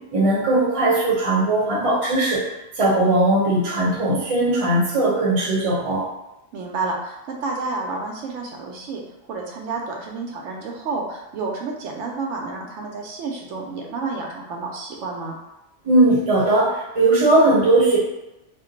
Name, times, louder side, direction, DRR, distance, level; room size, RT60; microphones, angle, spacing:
voice 1, 0.1-2.5 2.8-6.1 15.8-18.0, right 2 dB, 35° right, -4 dB, 0.7 m, -19 dB
voice 2, 6.5-15.4, right 3 dB, 80° right, 0 dB, 0.9 m, -30 dB
2.5 x 2.2 x 3.8 m, 0.94 s
omnidirectional pair, 1.2 m